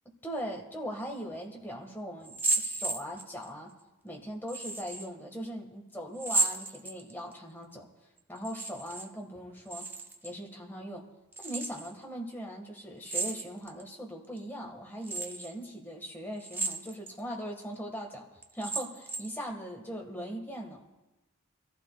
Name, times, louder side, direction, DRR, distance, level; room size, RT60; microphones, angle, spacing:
voice 1, 0.2-3.7 4.0-7.9 8.3-9.9 10.2-11.0 11.4-18.3 18.5-20.8, equal, 10° left, 0 dB, 1.5 m, -40 dB
sound 1, 2.2-3.5 4.5-5.1 6.2-7.3 8.4-9.1 9.4-10.3 11.3-11.9 13.0-13.8 14.4-14.5 15.0-15.5 16.4-17.2 17.6-17.7 18.4-19.4, right 3 dB, 10° right, 0.5 m, -33 dB
25.5 x 14.5 x 2.3 m, 1.0 s
head